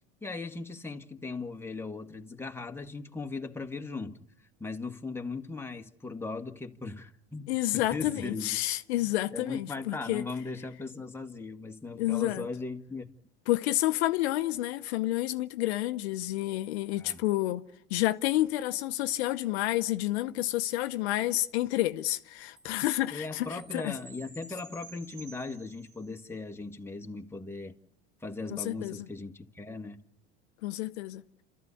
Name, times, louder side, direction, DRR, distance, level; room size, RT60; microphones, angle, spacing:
voice 1, 0.2-4.2 4.6-8.5 9.0-13.1 17.0-17.2 23.1-27.7 28.2-30.0, left 3 dB, 5° left, 1.7 m, -38 dB
voice 2, 7.5-10.2 12.0-12.4 13.5-17.6 17.9-24.0 28.5-29.0 30.6-31.2, left 16 dB, 80° left, 0.9 m, -29 dB
Chime, 22.6-26.3, right 3 dB, 75° right, 6.4 m, -52 dB
29.0 x 13.5 x 8.5 m
supercardioid pair, 90°, 32 cm